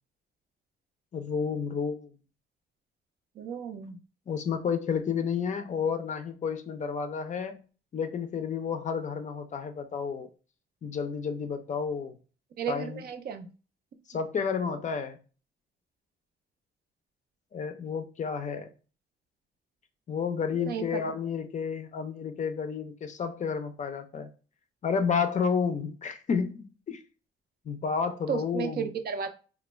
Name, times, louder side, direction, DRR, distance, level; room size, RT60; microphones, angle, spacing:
voice 1, 1.1-2.1 4.3-7.6 7.9-10.3 10.8-12.2 12.7-13.0 14.1-15.2 17.5-18.7 20.1-24.3 24.8-27.0 27.7-28.9, left 6 dB, 40° left, 0.4 m, -31 dB
voice 2, 3.4-4.0 12.6-13.5 20.5-21.0 28.3-29.3, right 7 dB, 50° right, 0.4 m, -33 dB
2.2 x 2.0 x 3.1 m
cardioid pair, 90°, 20 cm